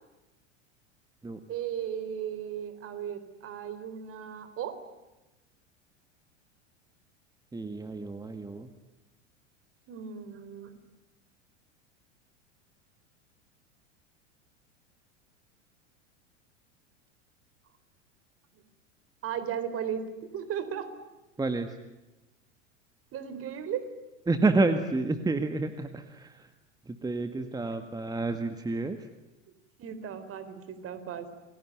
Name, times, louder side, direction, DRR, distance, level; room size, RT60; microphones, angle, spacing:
voice 1, 1.5-4.8 9.9-10.7 18.5-18.6 19.2-20.9 23.1-23.8 29.8-31.4, right 8 dB, 35° right, 11 dB, 4.2 m, -36 dB
voice 2, 7.5-8.7 21.4-21.8 24.3-26.5 26.9-29.1, right 3 dB, 10° right, 8 dB, 1.9 m, -29 dB
29.0 x 22.0 x 9.4 m, 1.0 s
hypercardioid pair, 90°, 37 cm